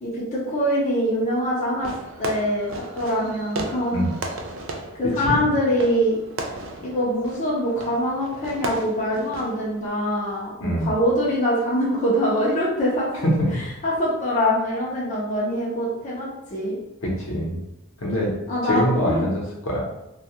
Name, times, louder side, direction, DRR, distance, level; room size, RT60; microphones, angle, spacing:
voice 1, 0.0-1.9 2.2-4.0 5.0-6.2 6.8-13.1 13.8-16.8 18.5-19.3, equal, 35° left, -6 dB, 0.6 m, -24 dB
Fireworks, 1.8-9.9, right 2 dB, 65° right, 0.4 m, -35 dB
voice 2, 10.6-10.9 13.2-13.6 17.0-17.6 18.0-18.3 18.6-19.8, equal, 70° left, -4 dB, 0.8 m, -23 dB
2.3 x 2.2 x 2.8 m, 0.90 s
head